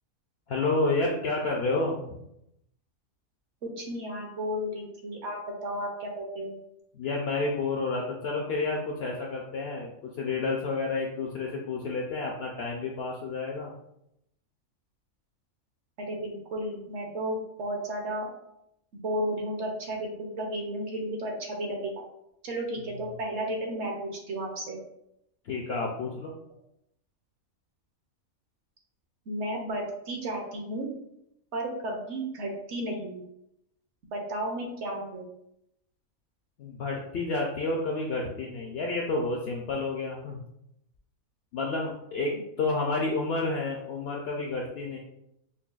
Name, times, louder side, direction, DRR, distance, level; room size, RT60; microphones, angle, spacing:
voice 1, 0.5-2.2 7.0-13.7 25.5-26.3 36.6-40.4 41.5-45.0, left 3 dB, 65° left, -1 dB, 0.6 m, -30 dB
voice 2, 3.6-5.4 5.6-6.6 16.0-18.3 18.9-22.0 22.4-24.8 29.3-30.9 31.5-33.2 34.1-35.3, right 1 dB, 60° right, 1 dB, 0.9 m, -33 dB
5.4 x 2.2 x 2.4 m, 0.80 s
omnidirectional pair, 1.5 m